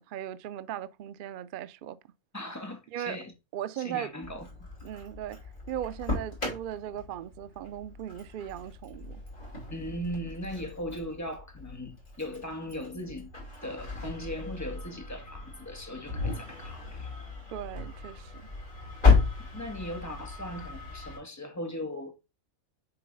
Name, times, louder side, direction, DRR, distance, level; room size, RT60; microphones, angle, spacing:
voice 1, 0.0-2.0 2.9-3.2 3.5-4.1 4.8-5.4 5.7-9.2 17.5-18.3, right 11 dB, 85° right, 0.4 m, -38 dB
voice 2, 2.3-3.3 3.7-4.5 9.7-13.3 13.6-17.1 19.5-22.2, equal, 15° left, 1.3 m, -38 dB
Engine starting, 4.2-21.2, left 4 dB, 35° left, 3.0 m, -33 dB
6.9 x 3.8 x 5.3 m
omnidirectional pair, 1.4 m